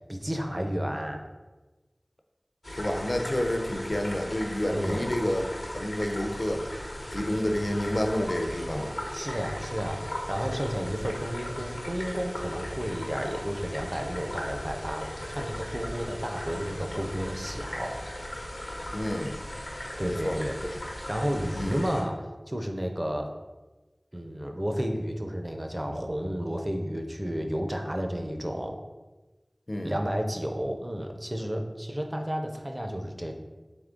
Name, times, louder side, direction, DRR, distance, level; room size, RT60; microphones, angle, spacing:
voice 1, 0.1-1.2 4.7-5.1 9.1-18.0 20.0-20.6 21.1-22.2 22.5-23.3 24.1-28.8 29.8-33.4, equal, 30° right, 4 dB, 0.5 m, -32 dB
sound 1, 2.6-22.0, left 1 dB, 85° left, 0.8 m, -37 dB
voice 2, 2.7-5.4 5.7-6.7 7.1-9.0 18.9-19.4 20.0-20.4 21.5-21.8 29.7-30.0, left 1 dB, 45° left, 4 dB, 0.4 m, -29 dB
3.6 x 3.0 x 3.7 m, 1.2 s
wide cardioid pair, 45°, 0 cm